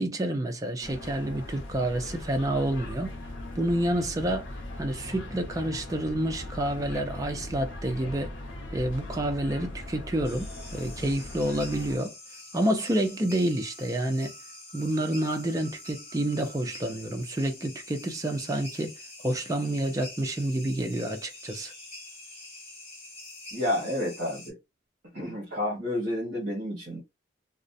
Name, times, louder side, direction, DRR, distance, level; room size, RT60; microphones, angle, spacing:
voice 1, 0.0-3.2 3.6-4.5 4.8-8.3 8.7-12.1 12.5-14.3 14.7-18.9 19.2-21.7, right 1 dB, 20° right, 0.4 m, -29 dB
sound 1, 0.8-12.0, left 1 dB, 80° left, 0.6 m, -39 dB
sound 2, 10.2-24.5, left 2 dB, 30° left, 0.9 m, -46 dB
voice 2, 23.5-24.6 25.1-27.0, left 1 dB, 55° right, 0.9 m, -30 dB
2.4 x 2.0 x 2.5 m
head